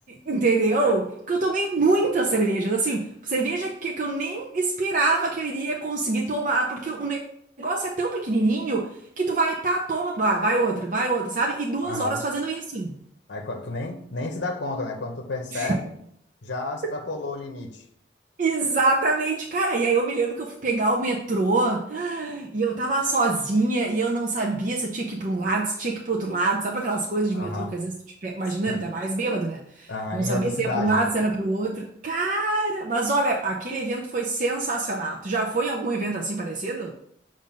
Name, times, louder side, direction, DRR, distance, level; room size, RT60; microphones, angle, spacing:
voice 1, 0.1-7.2 7.6-8.9 9.2-13.0 15.5-15.8 18.4-28.0 28.2-36.9, right 3 dB, 45° right, -1 dB, 0.6 m, -25 dB
voice 2, 11.8-12.2 13.3-15.9 16.4-17.8 27.3-27.7 28.7-28.8 29.9-31.1, left 2 dB, 65° left, 4 dB, 0.7 m, -31 dB
7.2 x 2.6 x 5.2 m, 0.72 s
head